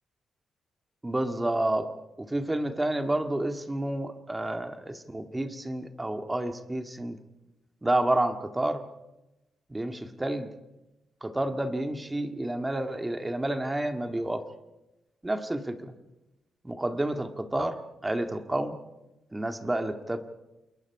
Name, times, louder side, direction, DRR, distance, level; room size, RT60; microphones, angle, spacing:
voice 1, 1.0-1.9 2.2-7.2 7.8-8.8 9.7-10.5 11.2-14.4 15.2-15.9 16.6-18.8 19.3-20.2, right 1 dB, 15° right, 7 dB, 2.0 m, -30 dB
28.5 x 21.5 x 4.9 m, 0.97 s
cardioid pair, 75°, 0 cm